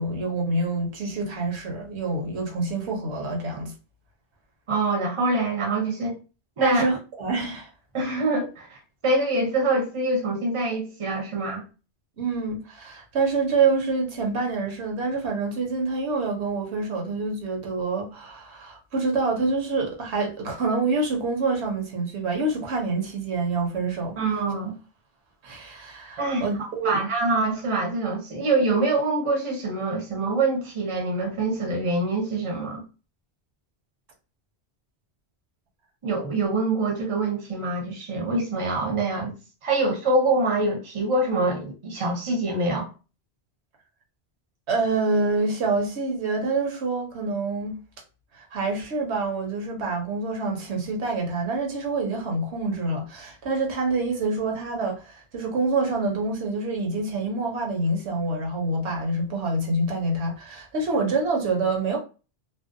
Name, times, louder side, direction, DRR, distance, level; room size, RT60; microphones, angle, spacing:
voice 1, 0.0-3.7 6.6-7.7 12.2-24.1 25.4-27.0 44.7-47.8 48.3-62.0, right 3 dB, 75° right, 1.0 m, -26 dB
voice 2, 4.7-6.2 6.6-6.8 7.9-11.6 24.2-24.7 26.2-32.8 36.0-39.3 39.6-42.9, right 2 dB, 35° right, 0.6 m, -25 dB
2.6 x 2.0 x 2.5 m
omnidirectional pair, 1.1 m